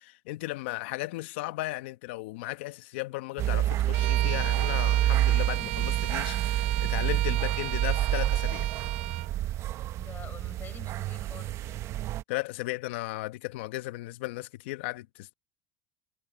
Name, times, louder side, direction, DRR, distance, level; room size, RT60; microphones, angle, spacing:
voice 1, 0.0-8.7 12.3-15.3, left 19 dB, 80° left, 1.2 m, -36 dB
sound 1, 3.4-12.2, right 13 dB, 50° right, 1.0 m, -28 dB
Bowed string instrument, 3.9-9.3, right 19 dB, 85° right, 0.5 m, -36 dB
voice 2, 10.0-11.9, left 7 dB, 30° left, 6.8 m, -48 dB
supercardioid pair, 105°, 6 cm